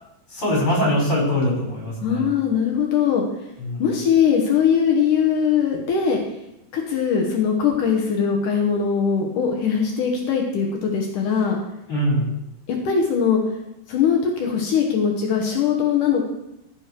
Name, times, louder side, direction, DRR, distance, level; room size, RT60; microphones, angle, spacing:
voice 1, 0.3-2.3 3.6-3.8 11.9-12.3, equal, 35° left, -3 dB, 5.7 m, -22 dB
voice 2, 2.0-3.2 3.8-6.2 6.7-11.6 12.7-13.4 13.9-16.3, left 7 dB, 65° left, 1 dB, 2.5 m, -21 dB
15.0 x 6.7 x 4.5 m, 0.86 s
omnidirectional pair, 4.2 m